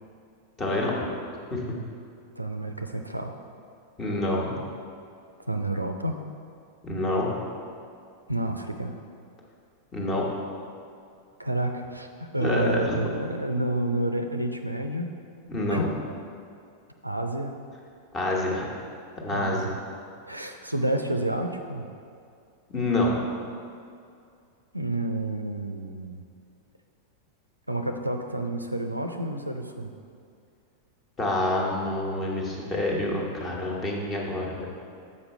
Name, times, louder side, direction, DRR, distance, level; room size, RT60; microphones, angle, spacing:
voice 1, 0.6-1.1 1.5-1.8 4.0-4.6 6.8-7.3 9.9-10.2 12.4-13.0 15.5-15.9 18.1-18.7 19.2-19.7 22.7-23.2 31.2-34.7, left 1 dB, 25° left, -2 dB, 1.3 m, -27 dB
voice 2, 2.4-3.4 5.5-6.2 8.3-8.9 11.4-15.1 15.7-15.9 17.0-17.6 19.3-19.8 20.3-21.9 24.7-26.2 27.7-29.9, right 1 dB, 85° right, 5 dB, 0.4 m, -29 dB
7.1 x 5.1 x 4.4 m, 2.4 s
figure-of-eight pair, 90°, 0 cm